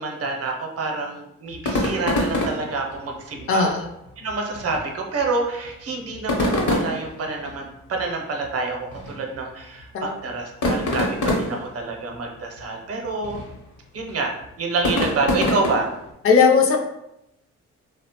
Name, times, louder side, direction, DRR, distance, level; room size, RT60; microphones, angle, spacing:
voice 1, 0.0-3.7 4.2-13.4 13.9-14.3 14.6-15.9, right 3 dB, 50° right, 1 dB, 0.6 m, -27 dB
sound 1, 1.5-16.1, left 1 dB, 70° left, 0.8 m, -28 dB
voice 2, 3.5-3.9 9.9-10.2 16.2-16.8, left 5 dB, 45° left, 3 dB, 0.4 m, -17 dB
2.7 x 2.0 x 2.8 m, 0.86 s
cardioid pair, 90°, 30 cm